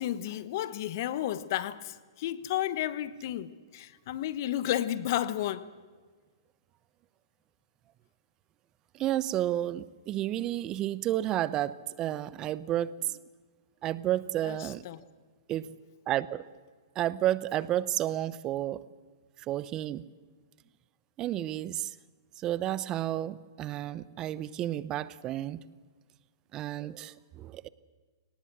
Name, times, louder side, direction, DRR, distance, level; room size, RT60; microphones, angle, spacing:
voice 1, 0.0-5.7 14.4-15.0, left 12 dB, 55° left, 1.1 m, -32 dB
voice 2, 8.9-13.2 13.8-14.8 15.5-15.7 16.1-16.5 16.9-18.8 19.4-20.1 21.2-22.0 22.4-25.6 26.5-27.7, right 13 dB, 30° right, 0.7 m, -31 dB
24.0 x 18.5 x 7.6 m
hypercardioid pair, 120°, 2 cm